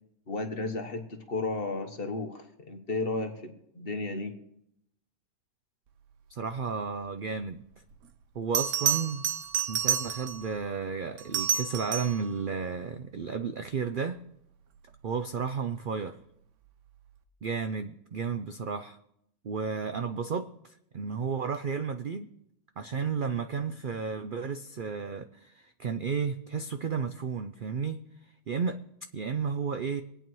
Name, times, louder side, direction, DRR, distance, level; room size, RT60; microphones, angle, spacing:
voice 1, 0.3-4.3, left 3 dB, 40° left, 5 dB, 1.2 m, -33 dB
voice 2, 6.3-7.6 8.3-9.3 9.7-14.2 15.0-16.2 17.4-19.0 19.4-22.3 22.8-28.8 29.1-30.0, right 5 dB, 90° right, 8 dB, 0.4 m, -33 dB
Bell, 7.9-8.0 8.5-10.5 11.2-12.3 14.9-15.2, right 9 dB, 60° right, 1.0 m, -29 dB
23.5 x 9.0 x 3.1 m, 0.78 s
omnidirectional pair, 1.6 m